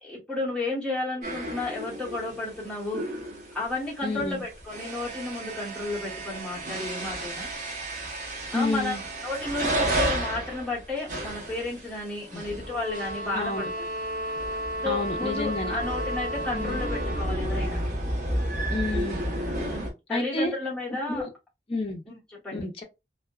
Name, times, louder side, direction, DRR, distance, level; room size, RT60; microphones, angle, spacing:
voice 1, 0.0-3.0 3.5-7.5 8.5-13.8 14.8-17.8 19.6-21.3 22.1-22.7, left 2 dB, 5° left, 1.0 m, -32 dB
sound 1, 1.2-19.9, right 1 dB, 45° right, 0.8 m, -33 dB
voice 2, 4.0-4.4 8.5-9.0 12.3-12.4 13.3-13.7 14.8-15.8 16.5-16.8 18.7-19.2 20.1-20.5 21.1-21.3 21.7-22.0 22.5-22.8, left 2 dB, 30° left, 0.5 m, -30 dB
sound 2, 12.6-17.4, right 1 dB, 90° right, 0.9 m, -33 dB
2.6 x 2.1 x 2.2 m
head